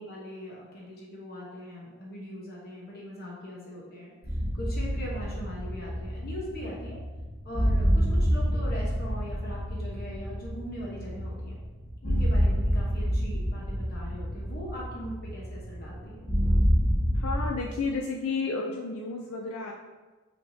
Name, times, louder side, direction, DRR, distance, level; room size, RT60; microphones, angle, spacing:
voice 1, 0.0-7.0 7.4-11.6 12.0-16.3, equal, 45° left, -4 dB, 0.9 m, -41 dB
sound 1, 4.2-17.5, equal, 20° left, 1.2 m, -28 dB
voice 2, 17.1-19.7, left 4 dB, 75° left, 0 dB, 0.4 m, -31 dB
5.7 x 3.5 x 2.7 m, 1.2 s
head